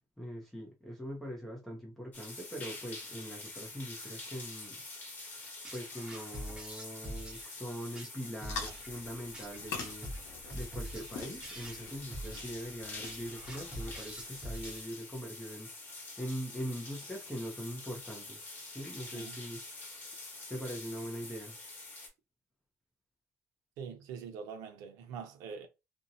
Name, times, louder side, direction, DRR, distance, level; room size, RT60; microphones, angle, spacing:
voice 1, 0.2-4.8 5.7-10.1 10.5-15.7 16.2-19.6 20.5-21.6, equal, 5° left, 0.6 m, -42 dB
sound 1, 2.1-22.1, left 2 dB, 30° left, 1.0 m, -46 dB
sound 2, 5.6-15.2, right 1 dB, 15° right, 0.9 m, -45 dB
sound 3, 8.4-14.7, left 5 dB, 65° left, 0.8 m, -46 dB
voice 2, 23.8-25.7, right 6 dB, 85° right, 0.7 m, -44 dB
2.6 x 2.1 x 2.5 m
cardioid pair, 160°, 6 cm